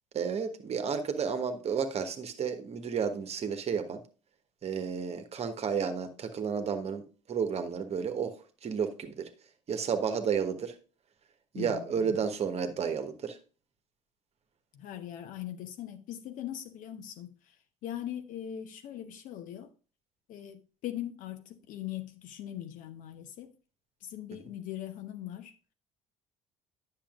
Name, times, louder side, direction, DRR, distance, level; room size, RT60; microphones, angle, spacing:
voice 1, 0.1-4.0 4.6-7.0 7.3-9.3 9.7-10.8 11.5-13.4, right 6 dB, 40° right, 1.2 m, -32 dB
voice 2, 11.5-12.3 14.7-17.3 17.8-19.7 20.3-23.5 24.0-25.5, left 11 dB, 55° left, 0.9 m, -40 dB
10.0 x 6.5 x 2.5 m
figure-of-eight pair, 55°, 16 cm